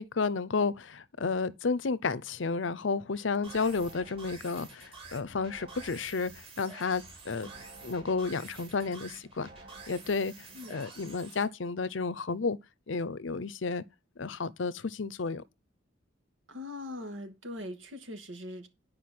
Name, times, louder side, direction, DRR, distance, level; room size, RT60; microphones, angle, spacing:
voice 1, 0.0-7.5 7.8-9.5 9.9-10.3 10.7-12.6 12.9-13.8 14.2-15.4, left 4 dB, 75° left, 0.7 m, -32 dB
sound 1, 3.4-11.4, right 3 dB, 30° right, 4.4 m, -48 dB
voice 2, 16.5-18.7, left 1 dB, 80° right, 2.5 m, -41 dB
10.5 x 5.1 x 7.7 m
head